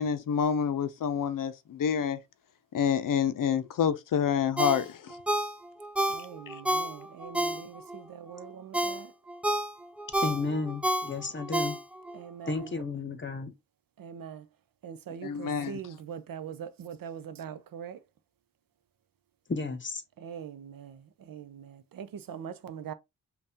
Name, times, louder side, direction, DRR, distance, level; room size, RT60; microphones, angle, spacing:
voice 1, 0.0-2.2 2.7-5.2 6.5-6.6 15.2-15.8, left 7 dB, 70° left, 0.5 m, -28 dB
Ringtone, 4.6-8.0 8.4-12.2 12.6-12.7, right 1 dB, 5° right, 0.4 m, -30 dB
voice 2, 6.1-9.1 12.1-12.8 14.0-14.5 14.8-18.0 20.2-22.9, right 8 dB, 80° right, 0.6 m, -42 dB
voice 3, 10.2-11.8 12.5-13.5 19.5-20.0, left 3 dB, 35° left, 0.9 m, -32 dB
5.4 x 2.3 x 2.7 m
cardioid pair, 70°, 34 cm